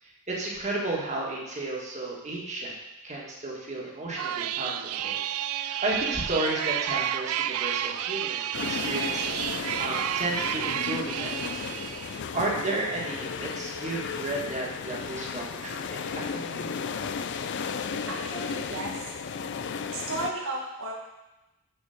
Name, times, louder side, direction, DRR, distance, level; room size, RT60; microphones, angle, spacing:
voice 1, 0.0-2.7 3.0-11.4 11.7-11.8 12.3-16.7, right 2 dB, 35° right, -3 dB, 1.7 m, -33 dB
sound 1, 4.2-12.2, right 11 dB, 80° right, 0.3 m, -31 dB
sound 2, 8.5-20.3, left 6 dB, 55° left, 0.4 m, -34 dB
voice 2, 18.1-19.2 19.9-20.9, right 2 dB, 65° right, -3 dB, 1.2 m, -34 dB
6.9 x 4.9 x 6.5 m, 0.99 s
head